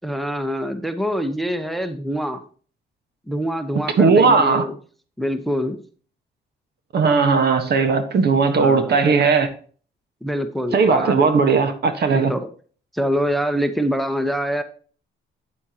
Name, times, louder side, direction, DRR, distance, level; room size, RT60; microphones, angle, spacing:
voice 1, 0.0-2.4 3.3-4.7 5.2-5.8 8.6-8.9 10.2-11.3 12.3-12.5 12.9-14.6, equal, ahead, 1.0 m, -25 dB
voice 2, 4.0-4.6 6.9-9.5 10.7-12.3, right 4 dB, 55° right, 1.4 m, -17 dB
9.0 x 8.8 x 2.9 m
cardioid pair, 90°, 20 cm